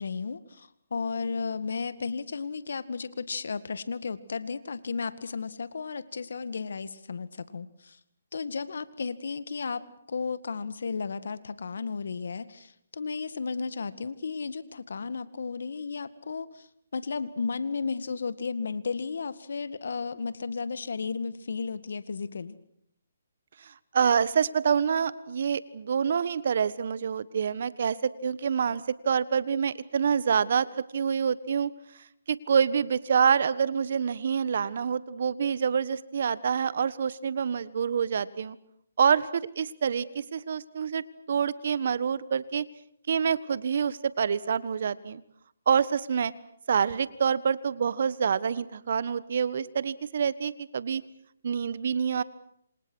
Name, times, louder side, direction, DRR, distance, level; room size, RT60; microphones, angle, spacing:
voice 1, 0.0-8.0 8.3-16.7 16.9-22.6, left 5 dB, 70° left, 14 dB, 1.9 m, -34 dB
voice 2, 23.6-30.7 30.9-31.7 32.3-38.6 39.0-42.6 43.1-45.2 45.7-46.3 46.7-51.0 51.4-52.2, right 7 dB, 55° right, 17 dB, 1.4 m, -27 dB
27.5 x 27.0 x 6.4 m, 0.71 s
hypercardioid pair, 150°, 0 cm